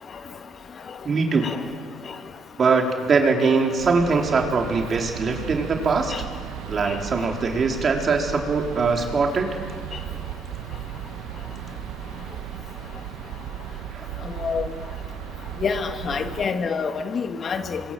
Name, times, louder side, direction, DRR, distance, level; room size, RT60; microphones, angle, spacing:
voice 1, 1.0-1.5 2.6-6.1 6.7-9.6 13.9-14.1, right 4 dB, 45° right, 2 dB, 4.2 m, -22 dB
sound 1, 3.8-16.5, right 11 dB, 75° right, 1.2 m, -36 dB
voice 2, 15.6-17.8, left 5 dB, 45° left, 7 dB, 2.1 m, -26 dB
26.5 x 22.5 x 7.8 m, 2.1 s
hypercardioid pair, 65°, 0 cm